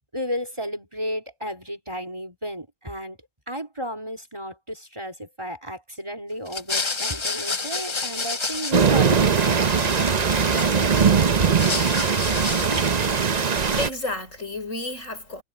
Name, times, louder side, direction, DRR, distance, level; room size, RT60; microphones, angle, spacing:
voice 1, 0.1-3.2 3.5-9.3, equal, 20° right, 4.0 m, -33 dB
sound 1, 6.5-9.1 9.3-11.0 11.4-13.0, left 4 dB, 25° left, 0.7 m, -30 dB
sound 2, 8.7-13.9, right 6 dB, 35° right, 0.8 m, -20 dB
voice 2, 13.2-15.4, left 2 dB, 60° left, 5.9 m, -32 dB
omnidirectional pair, 1.5 m